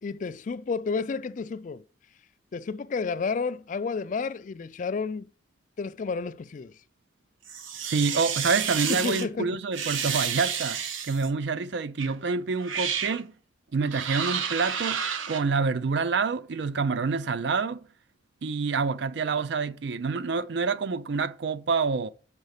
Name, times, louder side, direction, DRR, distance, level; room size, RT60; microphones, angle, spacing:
voice 1, 0.0-1.8 2.5-5.3 5.8-6.8 8.9-9.6, left 4 dB, 40° left, 0.3 m, -31 dB
sound 1, 7.5-9.3 9.7-11.3 12.0-12.1 12.6-13.2 13.9-15.4, right 7 dB, 75° right, 0.9 m, -30 dB
voice 2, 7.8-13.3 13.7-17.8 18.4-22.1, right 4 dB, 55° right, 0.4 m, -27 dB
5.7 x 5.3 x 6.5 m
head